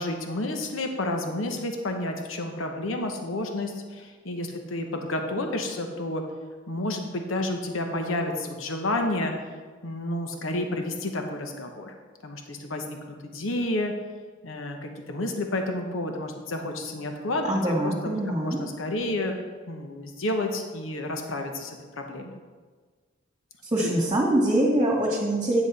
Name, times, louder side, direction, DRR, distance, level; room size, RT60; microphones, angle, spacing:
voice 1, 0.0-6.2 6.7-9.3 9.8-11.9 12.2-13.9 14.4-22.3 23.8-23.9, left 1 dB, 85° left, 4 dB, 1.0 m, -30 dB
voice 2, 17.5-18.6 23.7-25.6, right 1 dB, 25° right, -4 dB, 1.6 m, -23 dB
10.0 x 7.0 x 4.1 m, 1.5 s
head